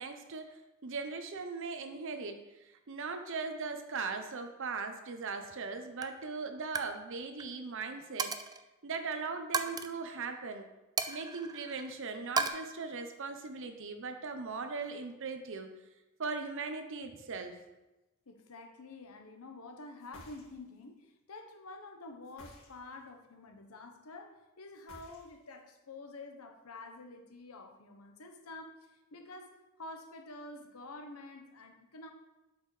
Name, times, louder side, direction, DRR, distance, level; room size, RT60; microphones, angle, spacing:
voice 1, 0.0-8.4 8.8-10.7 11.1-15.7 16.2-17.6, right 4 dB, 65° right, 7 dB, 0.8 m, -39 dB
Coin (dropping), 5.4-5.7 6.0-6.2 6.6-6.9 7.2-7.5 8.2-8.6 9.5-9.9 11.0-11.9 12.4-12.5, right 4 dB, 20° right, 0.3 m, -34 dB
voice 2, 18.3-32.1, left 2 dB, 90° left, 4 dB, 1.0 m, -49 dB
sound 1, 20.0-20.8 22.2-23.1 24.7-25.6, left 1 dB, 65° left, 2.0 m, -55 dB
8.0 x 6.4 x 3.2 m, 1.0 s
head